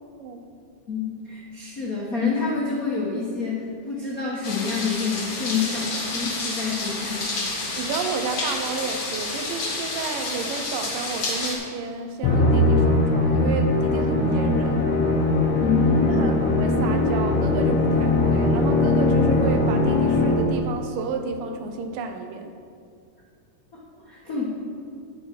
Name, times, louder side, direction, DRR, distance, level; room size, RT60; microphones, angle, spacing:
voice 1, 0.9-3.6 3.9-7.2 15.6-16.3 23.7-23.8 24.0-24.4, left 5 dB, 85° left, -5 dB, 0.7 m, -27 dB
sound 1, 4.4-11.6, left 2 dB, 45° left, 1.9 m, -30 dB
voice 2, 7.8-14.9 16.1-22.5, right 4 dB, 80° right, 6 dB, 2.4 m, -31 dB
Musical instrument, 12.2-20.7, left 2 dB, 65° left, 2.2 m, -20 dB
9.9 x 9.4 x 4.6 m, 2.4 s
omnidirectional pair, 3.9 m